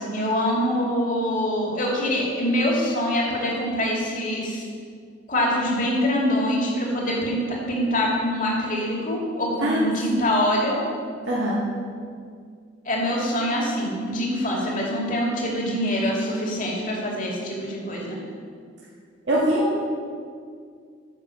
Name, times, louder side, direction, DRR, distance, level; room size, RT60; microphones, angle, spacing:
voice 1, 0.0-4.6 5.3-10.8 12.8-18.2, left 1 dB, 45° left, -3 dB, 2.5 m, -24 dB
voice 2, 9.6-10.2 11.3-11.6 19.3-19.8, right 1 dB, 75° right, -7 dB, 1.9 m, -23 dB
9.8 x 6.4 x 7.1 m, 2.1 s
head